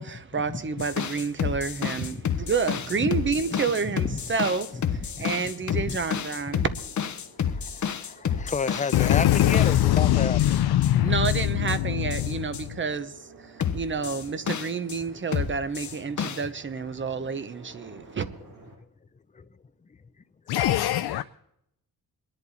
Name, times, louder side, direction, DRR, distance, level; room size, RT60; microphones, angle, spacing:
voice 1, 0.0-6.7 11.0-18.3, right 5 dB, 30° right, 0.9 m, -29 dB
sound 1, 0.8-10.9 11.2-11.8 12.1-12.6 13.6-15.0 15.3-16.4, left 7 dB, 50° left, 0.9 m, -30 dB
sound 2, 1.2-18.7, right 2 dB, 70° right, 7.6 m, -51 dB
voice 2, 3.8-4.2 5.2-5.4 5.8-6.0 7.5-10.4 16.2-16.4 19.3-19.4, left 5 dB, 20° left, 0.5 m, -31 dB
voice 3, 8.9-12.7 20.5-21.2, left 13 dB, 75° left, 0.5 m, -22 dB
22.5 x 11.0 x 4.2 m
wide cardioid pair, 160°, 38 cm